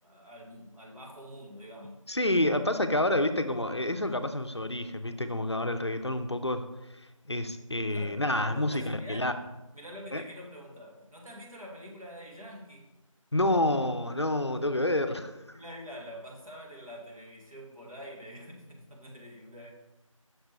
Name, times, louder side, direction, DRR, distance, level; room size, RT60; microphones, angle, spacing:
voice 1, 0.0-2.0 7.8-8.2 8.6-9.3 9.7-12.9 15.5-19.7, equal, 80° right, -2 dB, 1.9 m, -46 dB
voice 2, 2.1-6.7 7.3-9.3 10.1-10.2 13.3-15.3, left 1 dB, 50° left, 8 dB, 0.5 m, -28 dB
6.0 x 4.3 x 4.7 m, 0.96 s
figure-of-eight pair, 175°, 18 cm